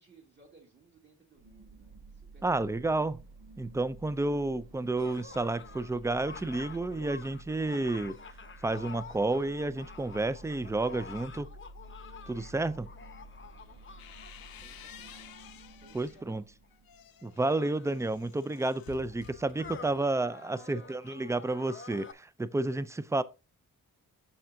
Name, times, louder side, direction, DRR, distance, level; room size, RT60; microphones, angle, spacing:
voice 1, 0.0-2.7 5.5-6.1 14.5-15.3 15.7-16.5 19.7-20.9, right 2 dB, 30° right, 2.1 m, -58 dB
sound 1, 1.4-17.3, right 1 dB, 70° right, 1.6 m, -52 dB
voice 2, 2.4-3.2 3.6-8.1 8.6-11.5 12.3-12.9 15.9-16.4 17.2-23.2, right 2 dB, 10° right, 0.4 m, -31 dB
sound 2, 5.0-15.8 16.6-16.7 17.3-22.1, left 5 dB, 35° left, 0.8 m, -49 dB
sound 3, 13.6-16.2 16.7-20.0, left 9 dB, 70° left, 0.7 m, -52 dB
7.0 x 6.3 x 2.7 m
cardioid pair, 70°, 37 cm